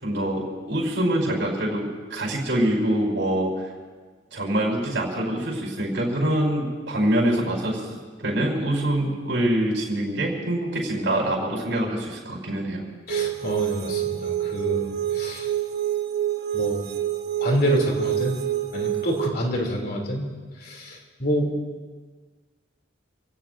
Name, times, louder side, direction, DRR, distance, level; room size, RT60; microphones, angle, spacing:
voice 1, 0.0-3.7 4.3-12.8, right 1 dB, 70° right, -3 dB, 5.0 m, -25 dB
voice 2, 13.1-14.9 15.1-15.5 16.5-16.8 17.4-18.4 18.7-20.3 20.6-21.5, equal, 50° left, 0 dB, 3.2 m, -27 dB
sound 1, 13.1-19.3, right 11 dB, 55° right, 1.0 m, -27 dB
28.5 x 17.0 x 2.7 m, 1.5 s
head